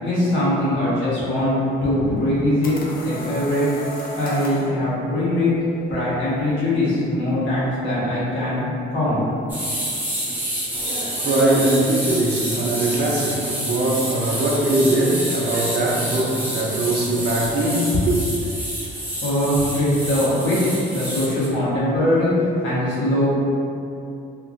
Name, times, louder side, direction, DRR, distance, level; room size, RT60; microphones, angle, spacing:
voice 1, 0.0-3.7 4.2-5.5 5.9-9.2 19.2-20.6 20.9-23.3, left 1 dB, 75° left, 1.2 m, -21 dB
sound 1, 2.2-4.7, left 1 dB, 50° left, 0.5 m, -34 dB
sound 2, 9.5-21.5, equal, 10° right, 0.7 m, -28 dB
voice 2, 10.7-18.2, right 1 dB, 55° right, 0.5 m, -21 dB
2.9 x 2.4 x 2.5 m
cardioid pair, 90°, 20 cm